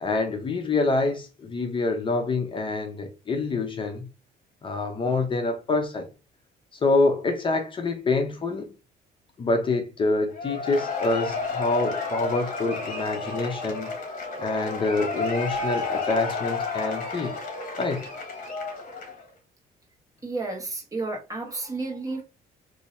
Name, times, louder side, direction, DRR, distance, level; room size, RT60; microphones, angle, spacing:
voice 1, 0.0-4.1 4.6-6.1 6.8-8.7 9.4-13.9 14.4-17.3 17.8-18.1, left 3 dB, 30° left, 0.7 m, -26 dB
Cheering / Applause / Crowd, 10.3-19.3, left 3 dB, 55° left, 1.2 m, -31 dB
voice 2, 20.2-22.2, right 3 dB, 20° right, 1.3 m, -31 dB
2.7 x 2.7 x 4.2 m
cardioid pair, 110°, 17 cm